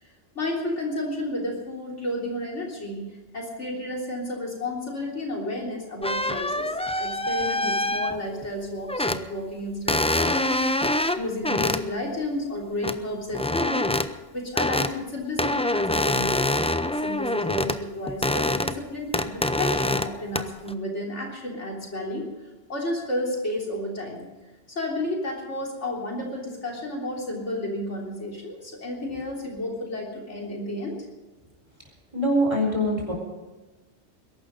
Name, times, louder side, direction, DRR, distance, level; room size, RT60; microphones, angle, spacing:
voice 1, 0.0-10.9 11.2-13.9 14.3-22.3 22.7-24.3 24.7-31.0, left 1 dB, 75° left, -1 dB, 3.8 m, -32 dB
sound 1, 6.0-8.5 8.9-9.3 9.9-11.8 12.8-13.0 13.3-14.1 14.6-14.9 15.4-17.8 18.1-18.8 19.1-20.1 20.3-20.7, left 1 dB, 10° left, 0.4 m, -25 dB
voice 2, 32.1-33.1, equal, 25° right, 0 dB, 4.5 m, -23 dB
21.5 x 11.5 x 5.4 m, 1.2 s
omnidirectional pair, 1.2 m